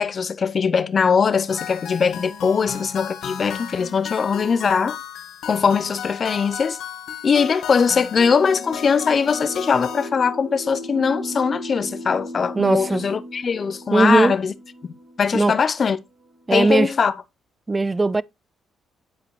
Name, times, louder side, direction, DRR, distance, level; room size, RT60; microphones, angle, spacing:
voice 1, 0.0-5.0 5.5-6.8 7.2-14.5 14.8-16.0 16.5-17.1, left 6 dB, 45° left, 0.6 m, -21 dB
sound 1, 1.5-10.1, left 8 dB, 75° left, 1.5 m, -35 dB
sound 2, 8.2-15.9 16.2-16.3, equal, 75° right, 4.8 m, -36 dB
voice 2, 12.6-13.0 13.9-14.3 15.3-15.5 16.5-16.9 17.7-18.2, right 3 dB, 20° right, 0.3 m, -18 dB
10.5 x 5.0 x 3.1 m
cardioid pair, 90°, 0 cm